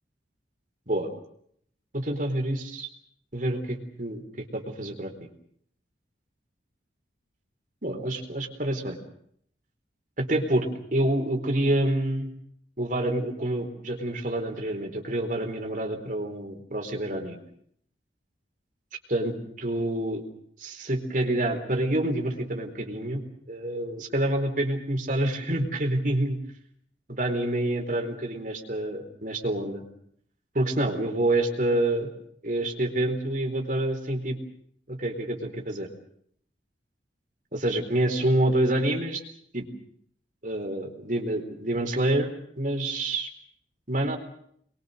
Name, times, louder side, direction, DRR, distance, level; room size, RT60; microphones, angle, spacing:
voice 1, 1.9-2.9 3.3-5.1 7.8-9.0 10.2-12.3 12.8-17.4 19.1-20.2 20.6-23.2 23.5-26.4 27.1-29.8 30.5-32.1 32.4-34.4 34.9-35.9 37.5-39.2 39.5-39.6 40.4-42.3 42.6-43.3 43.9-44.2, right 1 dB, 45° right, 4 dB, 4.2 m, -27 dB
27.0 x 22.5 x 6.7 m, 0.67 s
head